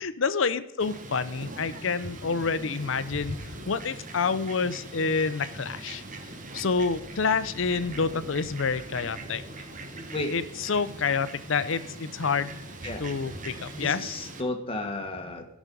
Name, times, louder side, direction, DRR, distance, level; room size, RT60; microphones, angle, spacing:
voice 1, 0.0-6.0 6.5-9.4 10.3-12.5 13.0-14.0, left 5 dB, 70° left, 14 dB, 0.7 m, -28 dB
Fowl, 0.8-14.4, right 2 dB, 40° right, 1.1 m, -41 dB
sound 1, 5.4-11.1, equal, 5° left, 2.6 m, -54 dB
voice 2, 13.7-15.5, left 2 dB, 30° left, 4 dB, 1.4 m, -33 dB
16.0 x 6.2 x 5.4 m, 0.82 s
head